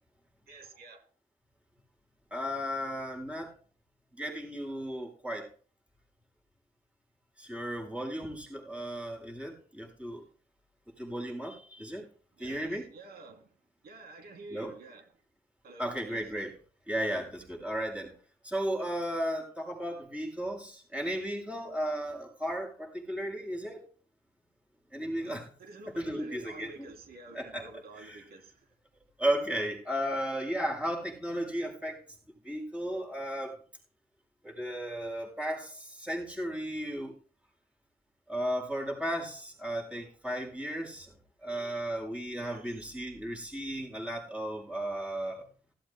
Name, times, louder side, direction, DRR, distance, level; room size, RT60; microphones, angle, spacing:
voice 1, 0.5-1.0 12.4-13.5 13.8-15.0 15.6-16.2 25.2-28.5 42.4-42.7, right 2 dB, 90° right, 4 dB, 3.2 m, -49 dB
voice 2, 2.3-3.5 4.1-5.5 7.4-10.2 11.0-12.1 12.4-12.8 14.5-14.7 15.8-16.5 16.9-18.1 18.4-23.8 24.9-25.5 25.9-26.9 27.3-28.2 29.2-32.0 32.4-33.6 34.4-37.1 38.3-41.1 41.4-45.5, equal, 10° right, -2 dB, 6.8 m, -35 dB
16.5 x 16.0 x 2.2 m, 0.41 s
cardioid pair, 100°, 16 cm